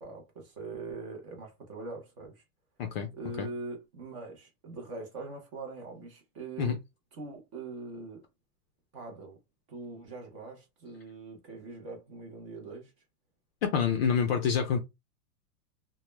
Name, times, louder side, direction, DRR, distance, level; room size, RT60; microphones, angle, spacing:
voice 1, 0.0-2.4 3.1-6.8 7.1-8.2 8.9-9.4 9.7-12.9, right 3 dB, 25° right, 0.4 m, -42 dB
voice 2, 13.6-14.8, left 7 dB, 40° left, 0.4 m, -27 dB
2.1 x 2.0 x 3.0 m
hypercardioid pair, 140°, 48 cm